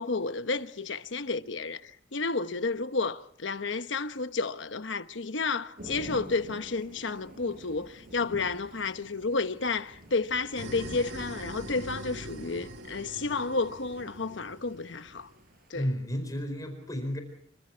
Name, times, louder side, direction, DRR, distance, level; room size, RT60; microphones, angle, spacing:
voice 1, 0.0-15.3 15.7-15.9, left 3 dB, 85° left, 1.1 m, -31 dB
Thunder / Rain, 5.8-15.7, equal, 50° right, 7.5 m, -48 dB
sound 1, 10.6-15.4, right 1 dB, 85° right, 2.0 m, -43 dB
voice 2, 15.7-17.2, equal, 20° left, 4.5 m, -32 dB
27.5 x 25.0 x 4.5 m
head